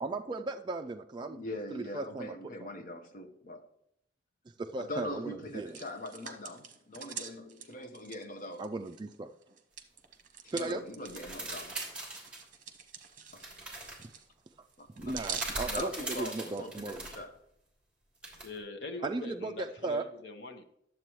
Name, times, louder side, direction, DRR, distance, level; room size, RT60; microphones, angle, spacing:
voice 1, 0.0-1.4 1.7-2.4 4.6-5.8 8.6-9.3 10.5-10.8 14.0-14.1 15.0-17.0 19.0-20.0, right 3 dB, 25° right, 0.3 m, -36 dB
voice 2, 1.2-3.7 4.8-8.7 10.4-11.8 13.3-13.5 14.8-15.2 15.7-17.3, left 1 dB, 50° left, 1.0 m, -42 dB
Hands, 5.4-9.1 9.4-16.7, right 7 dB, 50° right, 1.0 m, -45 dB
sound 1, 11.1-12.4 13.3-14.0 15.0-17.2 18.2-18.6, right 2 dB, 5° right, 2.9 m, -40 dB
voice 3, 18.4-20.6, left 2 dB, 70° left, 1.1 m, -43 dB
11.0 x 7.5 x 3.1 m
head